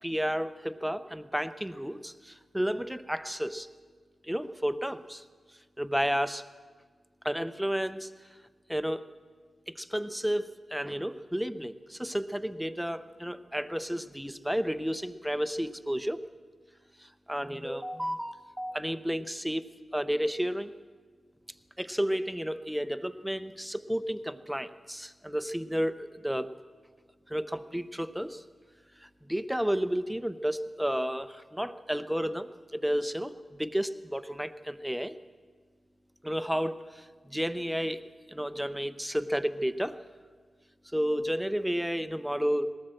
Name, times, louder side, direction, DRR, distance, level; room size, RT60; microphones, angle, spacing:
voice 1, 0.0-3.7 4.2-5.2 5.8-6.4 7.2-8.1 8.7-9.0 9.7-16.2 17.0-19.7 19.9-20.7 21.8-26.5 27.3-28.4 29.0-35.1 36.2-40.0 40.9-42.7, equal, 5° right, 12 dB, 0.7 m, -32 dB
20.5 x 17.5 x 7.7 m, 1.5 s
wide cardioid pair, 165°, 0 cm